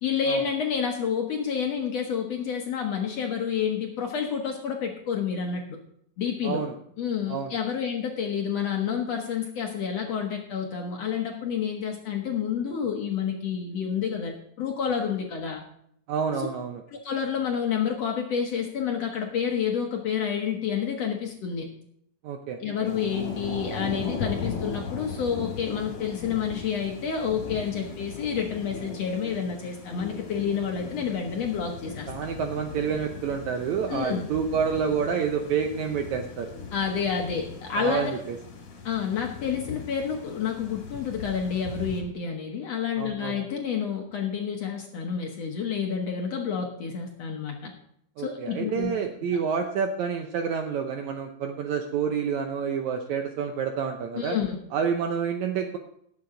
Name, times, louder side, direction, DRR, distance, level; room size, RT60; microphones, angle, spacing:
voice 1, 0.0-5.8 6.2-6.6 7.0-15.6 16.4-16.5 16.9-21.7 22.6-32.1 33.9-34.3 36.7-38.1 38.8-47.7 48.2-48.9 54.2-54.6, left 7 dB, 60° left, 2 dB, 1.8 m, -29 dB
voice 2, 6.4-6.7 7.3-7.6 16.1-16.8 22.2-22.6 32.1-36.5 37.8-38.4 43.0-43.3 48.2-54.4 54.7-55.8, right 6 dB, 75° right, 5 dB, 1.7 m, -28 dB
Thunder / Rain, 22.8-42.0, left 4 dB, 45° left, 2.6 m, -38 dB
18.0 x 7.7 x 3.8 m, 0.69 s
omnidirectional pair, 4.1 m